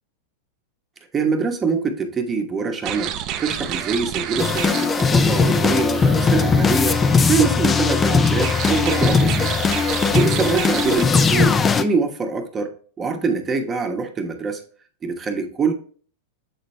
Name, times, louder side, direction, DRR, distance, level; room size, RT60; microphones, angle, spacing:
voice 1, 1.1-3.1 3.4-7.0 7.2-9.5 10.1-12.7 13.0-14.6 15.0-15.7, right 4 dB, 20° right, 5 dB, 1.1 m, -24 dB
sound 1, 2.8-11.0, right 10 dB, 45° right, 0.6 m, -30 dB
sound 2, 4.4-11.8, left 5 dB, 20° left, 0.5 m, -19 dB
7.9 x 4.0 x 3.2 m, 0.44 s
hypercardioid pair, 120°, 0 cm